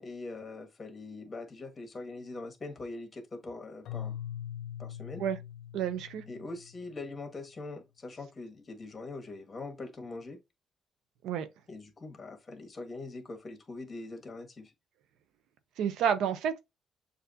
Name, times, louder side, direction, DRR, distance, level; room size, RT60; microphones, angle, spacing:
voice 1, 0.0-4.2 4.8-5.2 6.3-10.4 11.7-14.7, left 3 dB, 30° left, 1.5 m, -42 dB
Keyboard (musical), 3.8-7.0, left 10 dB, 80° left, 0.6 m, -42 dB
voice 2, 5.7-6.2 11.2-11.5 15.8-16.6, right 8 dB, 85° right, 0.7 m, -30 dB
6.7 x 2.7 x 2.6 m
cardioid pair, 90°, 0 cm